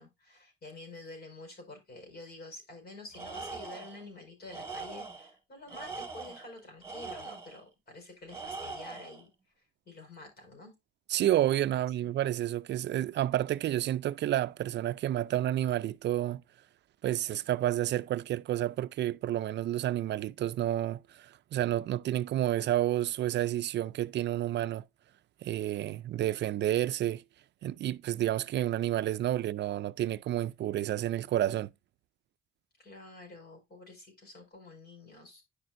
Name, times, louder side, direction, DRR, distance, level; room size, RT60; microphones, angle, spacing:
voice 1, 0.0-9.3 9.8-10.7 11.7-12.1 32.8-35.4, left 2 dB, 50° left, 4.9 m, -49 dB
Tools, 3.1-4.0 4.5-5.3 5.7-7.6 8.3-9.2, right 4 dB, 15° right, 2.7 m, -42 dB
voice 2, 11.1-16.4 17.0-24.8 25.4-27.2 27.6-31.7, right 13 dB, 65° right, 0.4 m, -30 dB
9.9 x 6.1 x 2.6 m
cardioid pair, 90°, 20 cm